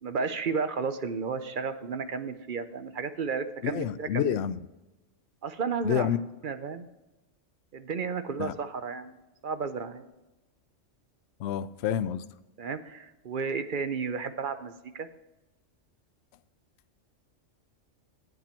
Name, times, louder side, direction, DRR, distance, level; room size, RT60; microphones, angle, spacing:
voice 1, 0.0-4.4 5.4-6.1 6.4-6.9 7.7-9.2 9.4-10.1 12.6-15.1, right 5 dB, 50° right, 10 dB, 0.7 m, -33 dB
voice 2, 3.6-4.6 5.8-6.2 8.4-8.5 11.4-12.2, left 10 dB, 65° left, 13 dB, 0.8 m, -28 dB
9.2 x 8.7 x 4.4 m, 1.0 s
omnidirectional pair, 1.3 m